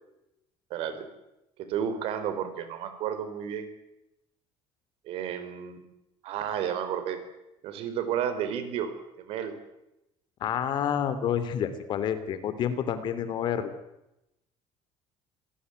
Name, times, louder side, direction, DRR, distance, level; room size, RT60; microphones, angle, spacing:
voice 1, 0.7-1.1 1.6-3.7 5.0-5.9 6.2-7.2 7.6-8.9 9.2-9.5, right 9 dB, 60° right, 10 dB, 4.5 m, -32 dB
voice 2, 10.4-13.7, left 9 dB, 45° left, 12 dB, 2.8 m, -29 dB
27.0 x 17.5 x 9.5 m, 0.90 s
cardioid pair, 165°, 11 cm